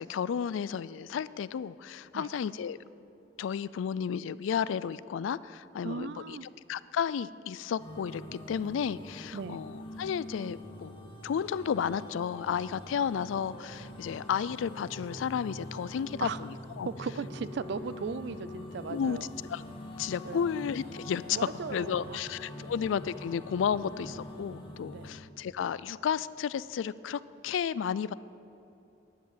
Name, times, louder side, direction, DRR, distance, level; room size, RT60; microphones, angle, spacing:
voice 1, 0.0-2.8 3.4-6.4 6.7-16.5 16.8-16.9 18.9-19.2 19.5-19.6 20.0-28.1, left 7 dB, 90° left, 18 dB, 0.3 m, -32 dB
voice 2, 5.8-6.5 9.3-9.6 16.2-16.4 16.9-19.3 20.2-20.5 21.3-22.3 22.6-22.7 24.9-25.1, right 5 dB, 60° right, 16 dB, 0.4 m, -37 dB
sound 1, 7.8-25.1, left 1 dB, 30° left, 1.8 m, -44 dB
10.5 x 8.6 x 7.4 m, 2.9 s
head